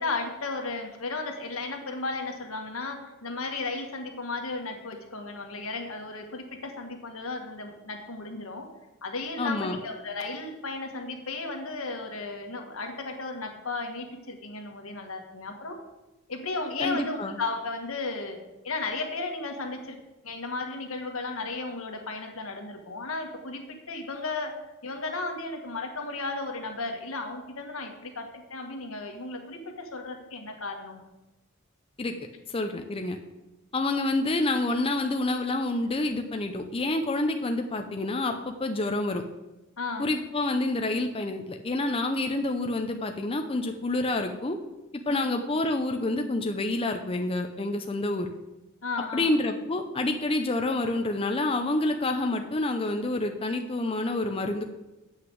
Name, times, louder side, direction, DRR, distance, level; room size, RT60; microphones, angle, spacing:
voice 1, 0.0-8.7 9.0-15.8 16.3-20.0 20.2-24.5 24.8-31.0 39.8-40.1 45.1-45.4 48.8-49.4, left 3 dB, 80° left, 4 dB, 1.6 m, -34 dB
voice 2, 9.4-9.8 16.8-17.4 32.0-32.1 32.5-33.2 33.7-39.2 40.0-44.6 45.1-48.3 49.1-54.6, left 2 dB, 25° left, 5 dB, 0.6 m, -28 dB
8.1 x 5.9 x 7.8 m, 1.0 s
head